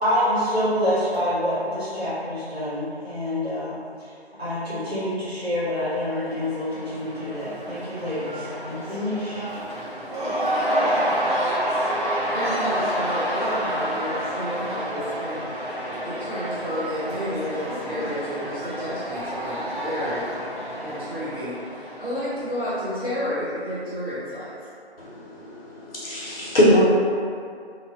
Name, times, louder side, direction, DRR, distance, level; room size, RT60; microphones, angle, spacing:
voice 1, 0.0-4.1 4.4-9.5, left 1 dB, 65° right, -13 dB, 1.5 m, -27 dB
Cheering / Crowd, 5.9-22.8, equal, 45° right, 0.6 m, -29 dB
voice 2, 12.3-15.4 16.0-20.3 20.8-24.5, equal, 20° right, -23 dB, 1.1 m, -31 dB
voice 3, 25.0-26.8, equal, 60° left, -8 dB, 1.0 m, -22 dB
3.0 x 2.3 x 2.6 m, 2.3 s
figure-of-eight pair, 180°, 33 cm